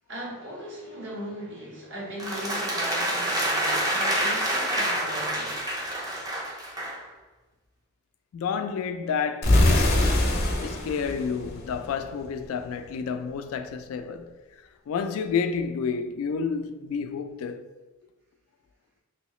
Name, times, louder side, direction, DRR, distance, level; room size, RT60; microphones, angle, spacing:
voice 1, 0.1-5.7, equal, 60° right, 1.0 m, -38 dB
sound 1, 2.2-7.0, right 1 dB, 20° right, 0.5 m, -27 dB
voice 2, 8.3-10.2 10.6-14.3 14.9-17.7, left 6 dB, 85° left, 0.3 m, -30 dB
sound 2, 9.4-12.3, left 1 dB, 50° left, 0.6 m, -23 dB
3.1 x 2.8 x 3.0 m
head